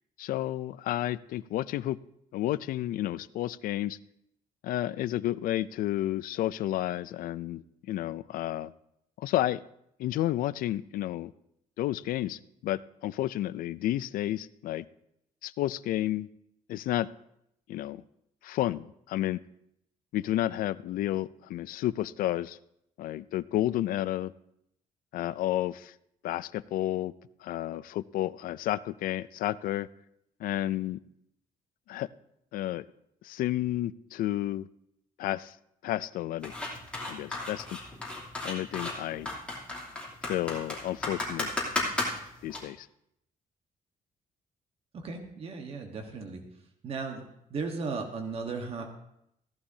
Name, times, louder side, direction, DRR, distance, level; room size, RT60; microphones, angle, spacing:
voice 1, 0.2-2.0 2.3-4.0 4.6-8.7 9.2-9.6 10.0-11.3 11.8-14.8 15.4-16.3 16.7-17.1 17.7-18.0 18.4-19.4 20.1-22.6 23.0-24.3 25.1-25.9 26.2-27.1 27.4-29.9 30.4-31.0 31.9-32.1 32.5-32.8 33.2-34.7 35.2-35.6 35.8-36.5 37.1-37.8 38.4-39.3 40.2-41.5 42.4-42.9, left 14 dB, 80° left, 17 dB, 0.4 m, -31 dB
sound 1, 36.4-42.6, left 2 dB, 10° left, 2.9 m, -34 dB
voice 2, 44.9-46.4 46.8-47.2 47.5-48.8, right 4 dB, 45° right, 3 dB, 1.3 m, -36 dB
16.0 x 11.5 x 2.7 m, 0.76 s
cardioid pair, 160°, 14 cm